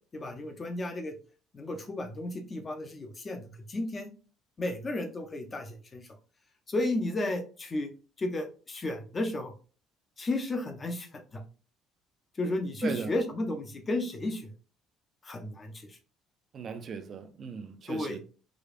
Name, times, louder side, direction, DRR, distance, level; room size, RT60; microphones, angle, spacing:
voice 1, 0.1-1.1 1.5-4.1 4.6-6.1 6.7-7.9 8.2-9.5 10.2-11.4 12.4-14.5 15.2-16.0 17.9-18.2, left 2 dB, 20° left, 0.6 m, -33 dB
voice 2, 16.5-18.2, right 6 dB, 35° right, 0.4 m, -37 dB
4.9 x 2.3 x 2.4 m
cardioid pair, 170°, 0 cm